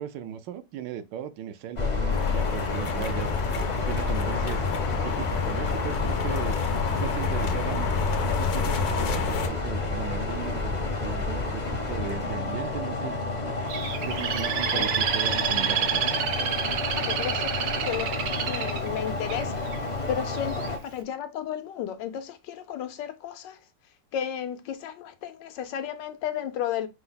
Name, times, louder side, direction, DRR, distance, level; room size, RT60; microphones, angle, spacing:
voice 1, 0.0-3.3 3.9-4.7 5.0-7.9 8.2-13.2 14.0-16.0, right 9 dB, 85° right, 1.3 m, -37 dB
sound 1, 1.8-20.8, left 3 dB, 40° left, 0.6 m, -30 dB
sound 2, 2.1-9.5, left 5 dB, 70° left, 1.1 m, -29 dB
Bird, 13.7-19.8 20.3-20.7, right 8 dB, 65° right, 1.1 m, -28 dB
voice 2, 17.0-19.7 20.1-23.6 24.1-26.9, left 9 dB, 85° left, 1.4 m, -33 dB
5.5 x 2.0 x 3.9 m
omnidirectional pair, 1.9 m